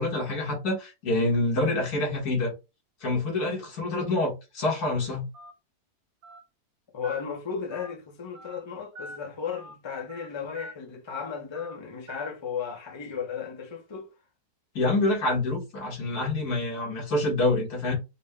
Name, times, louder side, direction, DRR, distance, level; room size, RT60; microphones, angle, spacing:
voice 1, 0.0-2.5 3.0-5.3 14.7-17.9, left 2 dB, 70° left, 2.0 m, -26 dB
Telephone, 5.3-5.5 6.2-6.4 7.0-7.2 7.7-7.9 8.3-8.6 8.9-9.2 9.6-9.7 10.1-10.3 10.5-10.7 11.1-11.2 11.5-11.8 12.1-12.3, equal, 65° right, 1.4 m, -43 dB
voice 2, 6.9-14.1, left 6 dB, 25° left, 0.6 m, -35 dB
4.4 x 2.2 x 3.5 m
omnidirectional pair, 1.7 m